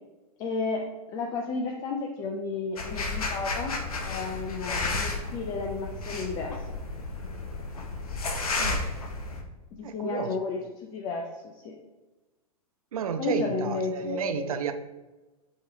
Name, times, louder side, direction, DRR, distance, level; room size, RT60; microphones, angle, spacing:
voice 1, 0.4-0.8 1.1-3.7 4.1-6.6 9.8-11.7 13.2-14.5, left 4 dB, 20° left, 1 dB, 0.3 m, -32 dB
sound 1, 2.8-9.4, left 3 dB, 70° left, 0.7 m, -32 dB
voice 2, 8.6-8.9 9.8-10.4 12.9-14.7, right 7 dB, 65° right, 8 dB, 0.4 m, -31 dB
5.4 x 3.0 x 2.7 m, 1.1 s
figure-of-eight pair, 105°, 19 cm